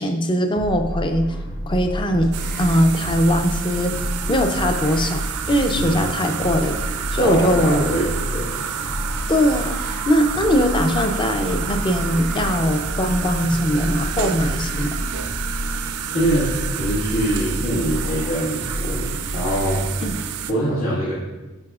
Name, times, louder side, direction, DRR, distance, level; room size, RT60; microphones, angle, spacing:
voice 1, 0.0-1.3 1.7-2.3 2.6-3.9 4.3-5.2 5.5-6.8 7.1-7.9 9.3-9.8 10.1-15.0 20.0-20.2, equal, 20° left, 5 dB, 0.5 m, -20 dB
sound 1, 0.5-20.1, equal, 40° left, 1.3 m, -30 dB
sound 2, 2.3-20.5, right 7 dB, 85° right, 0.5 m, -30 dB
voice 2, 7.2-8.6 16.1-19.8 20.5-21.1, right 1 dB, 85° left, -10 dB, 1.7 m, -23 dB
9.7 x 5.4 x 2.4 m, 1.2 s
head